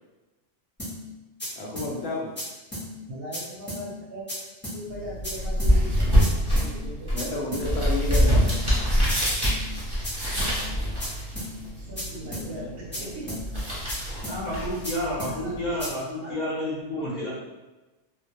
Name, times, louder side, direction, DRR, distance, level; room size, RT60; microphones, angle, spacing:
sound 1, 0.8-0.9 1.4-1.5 1.8-1.9 2.4-2.5 2.7-2.9 3.3-3.4 3.7-3.8 4.3-4.4 4.6-4.8 5.2-5.3 5.6-5.7 6.2-6.3 6.6-6.7 7.2-7.3 7.5-7.7 8.1-8.2 8.5-8.6 9.1-9.2 9.4-9.6 10.0-10.1 10.4-10.5 11.0-11.1 11.4-11.5 12.0-12.1 12.3-12.5 12.9-13.0 13.3-13.4 13.9-14.0 14.2-14.4 14.8-14.9 15.2-15.3 15.8-15.9, equal, 10° left, 0.7 m, -34 dB
voice 1, 1.6-2.3 7.1-8.4 12.2-13.4, left 2 dB, 85° left, -2 dB, 0.9 m, -32 dB
voice 2, 3.1-4.3 4.7-7.1 11.9-13.5 15.3-15.5 16.2-16.4 17.0-17.3, equal, 65° right, -4 dB, 0.7 m, -39 dB
sound 2, 4.9-15.9, equal, 25° right, 0.7 m, -26 dB
voice 3, 14.3-17.3, left 1 dB, 45° left, -7 dB, 0.8 m, -30 dB
2.1 x 2.1 x 2.8 m, 1.1 s
omnidirectional pair, 1.2 m